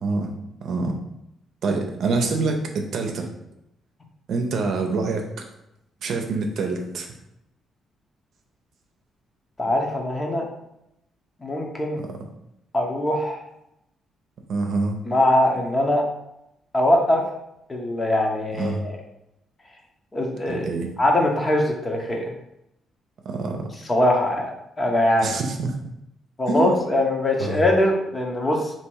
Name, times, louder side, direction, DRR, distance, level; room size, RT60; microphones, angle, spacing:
voice 1, 0.0-0.3 0.6-1.0 1.6-3.3 4.3-5.3 6.0-7.1 12.0-12.1 14.5-15.0 18.6-18.8 20.5-20.9 23.2-23.7 25.2-25.8 26.5-26.8 27.4-27.6, right 3 dB, 65° right, 3 dB, 0.7 m, -26 dB
voice 2, 9.6-10.5 11.4-12.0 12.7-13.4 15.1-16.0 16.7-17.2 17.7-19.0 20.1-20.6 21.0-22.3 23.9-24.5 24.8-25.3 26.4-28.7, left 1 dB, 25° left, 1 dB, 1.0 m, -22 dB
3.4 x 2.9 x 4.7 m, 0.82 s
cardioid pair, 90°, 0 cm